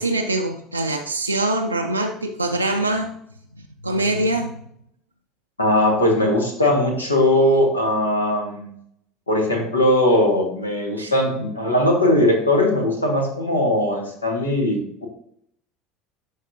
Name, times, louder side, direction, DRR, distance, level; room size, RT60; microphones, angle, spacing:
voice 1, 0.0-3.1 3.6-4.5 11.0-11.1, right 1 dB, 90° right, 1 dB, 0.4 m, -24 dB
voice 2, 5.6-8.7 9.3-15.1, left 1 dB, 85° left, 2 dB, 1.3 m, -19 dB
11.0 x 3.9 x 2.6 m, 0.70 s
figure-of-eight pair, 65°, 0 cm